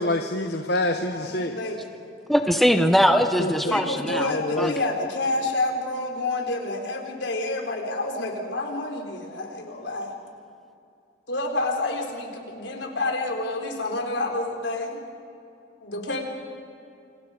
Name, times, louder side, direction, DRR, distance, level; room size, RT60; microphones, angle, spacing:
voice 1, 0.0-1.6 3.4-3.8 4.1-4.8, left 2 dB, 60° left, 5 dB, 1.2 m, -27 dB
voice 2, 1.1-1.8 3.6-10.1 11.3-15.0 15.8-16.2, left 2 dB, 85° left, 2 dB, 4.0 m, -29 dB
voice 3, 2.3-4.2 4.6-4.7, equal, ahead, 6 dB, 0.9 m, -20 dB
28.0 x 26.5 x 5.1 m, 2.6 s
head